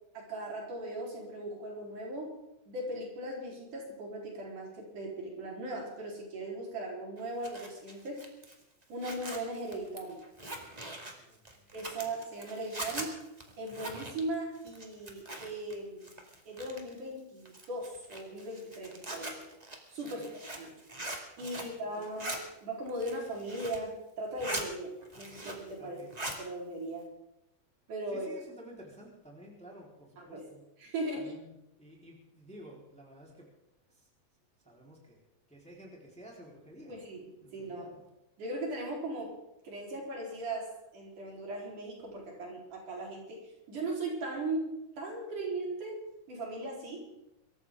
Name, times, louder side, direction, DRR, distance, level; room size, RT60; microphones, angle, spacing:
voice 1, 0.1-2.4 2.7-8.2 8.9-10.2 11.7-13.2 13.6-16.1 16.4-19.4 19.9-20.2 20.6-20.7 21.4-24.9 25.2-26.1 26.4-27.1 27.9-28.3 30.2-30.4 30.8-31.3 36.9-37.2 37.5-37.9 38.4-39.4 39.6-43.4 43.7-46.0 46.3-47.1, right 1 dB, 65° right, -2 dB, 5.5 m, -38 dB
Zipper (clothing), 7.2-15.7 16.0-17.0 17.5-21.8 22.0-22.4 22.9-23.9 24.2-24.7 25.0-25.7 26.0-26.4, right 1 dB, 15° right, 1.6 m, -42 dB
voice 2, 11.2-11.6 12.0-12.1 20.0-20.3 21.4-22.2 22.5-22.6 25.8-26.1 28.1-30.7 31.1-31.5 31.8-33.5 33.9-34.1 34.6-35.2 35.5-36.9 37.4-38.1, equal, ahead, -3 dB, 3.7 m, -52 dB
24.0 x 14.0 x 3.7 m, 0.88 s
omnidirectional pair, 3.9 m